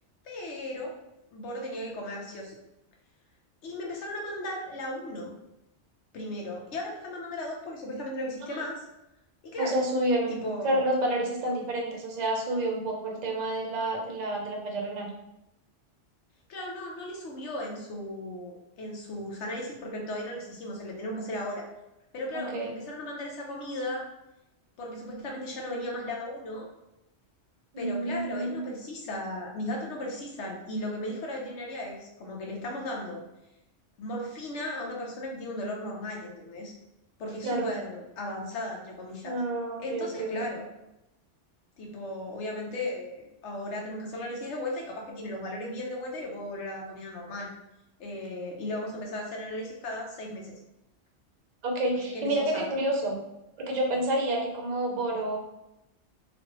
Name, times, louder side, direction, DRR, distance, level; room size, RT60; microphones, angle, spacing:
voice 1, 0.2-1.0 1.3-2.5 3.6-5.3 6.1-8.8 9.4-9.8 10.3-10.8 16.5-21.7 22.1-24.1 24.8-26.7 27.8-33.2 34.0-36.7 37.2-39.3 39.8-40.7 41.8-47.5 48.0-50.5 52.1-52.6, left 1 dB, 75° left, -1 dB, 1.0 m, -36 dB
voice 2, 9.6-15.1 22.3-22.7 27.7-28.7 37.4-37.7 39.2-40.5 51.6-53.2 53.6-55.4, right 1 dB, 45° right, 0 dB, 0.6 m, -29 dB
3.0 x 2.5 x 2.9 m, 0.90 s
omnidirectional pair, 1.2 m